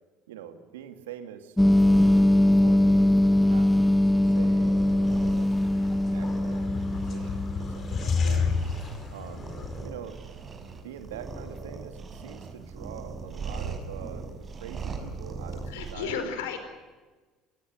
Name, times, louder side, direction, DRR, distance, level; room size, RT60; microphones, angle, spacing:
voice 1, 0.3-1.6 1.9-2.3 2.6-8.5 9.1-9.5 9.8-16.4, right 9 dB, 85° right, 8 dB, 2.3 m, -45 dB
sound 1, 1.6-8.0, left 1 dB, 5° left, 0.8 m, -21 dB
sound 2, 1.8-15.9, right 4 dB, 35° right, 6.4 m, -40 dB
sound 3, 4.8-9.9, left 5 dB, 45° left, 4.7 m, -31 dB
voice 2, 8.2-8.5 15.7-16.6, left 6 dB, 85° left, 8 dB, 4.7 m, -34 dB
26.5 x 19.5 x 7.9 m, 1.3 s
hypercardioid pair, 70°, 0 cm